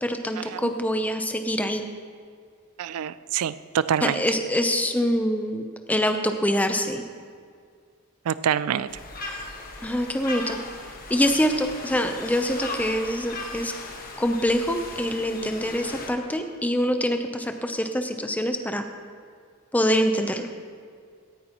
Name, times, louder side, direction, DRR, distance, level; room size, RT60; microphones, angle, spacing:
voice 1, 0.0-1.9 4.0-7.0 9.8-10.6 11.1-13.7 14.2-18.8 19.7-20.5, equal, 5° left, 6 dB, 0.6 m, -25 dB
voice 2, 2.8-4.2 8.3-8.9, right 8 dB, 90° right, 16 dB, 0.4 m, -26 dB
sound 1, 8.9-16.1, left 3 dB, 40° left, 1.3 m, -37 dB
17.5 x 9.9 x 3.0 m, 2.1 s
head